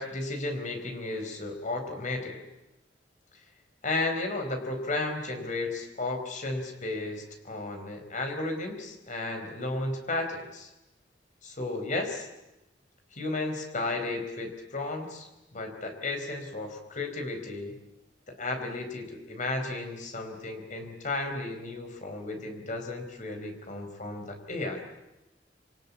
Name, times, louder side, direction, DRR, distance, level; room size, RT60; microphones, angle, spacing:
voice 1, 0.0-2.4 3.8-10.7 11.4-12.3 13.1-17.8 18.3-24.8, left 2 dB, 45° left, 5 dB, 4.6 m, -34 dB
27.5 x 25.0 x 8.6 m, 0.93 s
head